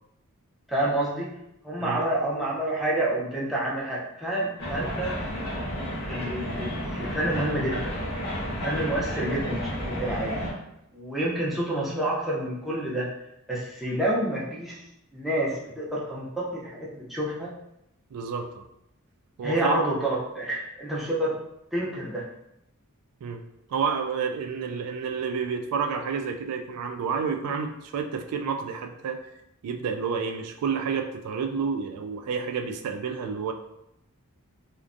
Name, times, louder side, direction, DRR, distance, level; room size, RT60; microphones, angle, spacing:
voice 1, 0.7-1.3 1.6-5.1 6.1-7.9 8.5-10.3 10.9-13.1 13.5-14.8 15.1-17.5 19.4-21.4 21.7-22.2, right 1 dB, ahead, -7 dB, 0.5 m, -28 dB
sound 1, 4.6-10.5, equal, 50° left, 0.7 m, -32 dB
voice 2, 18.1-18.6 19.4-19.8 23.2-23.4 23.7-29.2 29.6-33.5, right 6 dB, 90° right, 10 dB, 0.3 m, -30 dB
2.5 x 2.1 x 2.5 m, 0.82 s
head